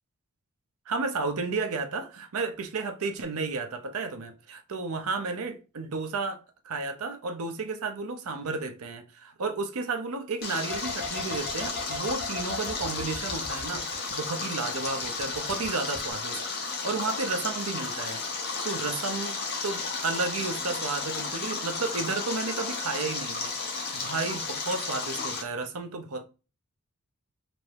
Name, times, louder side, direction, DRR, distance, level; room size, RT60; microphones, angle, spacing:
voice 1, 0.9-26.2, right 3 dB, 85° right, 0.6 m, -33 dB
Stream, 10.4-25.4, left 4 dB, 45° left, 0.8 m, -33 dB
sound 1, 10.7-14.4 14.7-15.7 15.9-16.1, left 4 dB, 5° right, 1.6 m, -38 dB
3.4 x 2.6 x 3.3 m
head